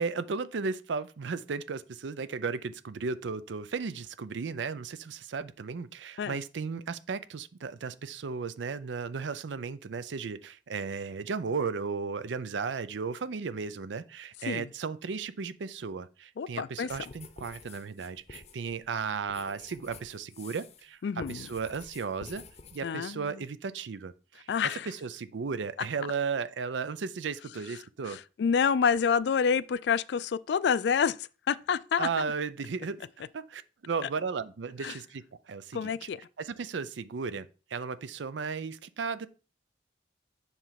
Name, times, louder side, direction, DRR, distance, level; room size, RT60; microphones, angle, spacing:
voice 1, 0.0-21.0 21.3-22.4 22.7-28.2 32.0-33.1 33.3-36.1 36.4-39.3, right 5 dB, 85° right, 0.5 m, -35 dB
voice 2, 16.4-16.9 21.0-21.5 22.8-23.4 24.5-24.9 28.0-32.1 34.8-35.0 35.7-36.2, left 6 dB, 65° left, 0.3 m, -28 dB
sound 1, 16.9-20.9 21.2-22.8, left 4 dB, 35° left, 0.7 m, -49 dB
7.1 x 3.3 x 5.7 m
head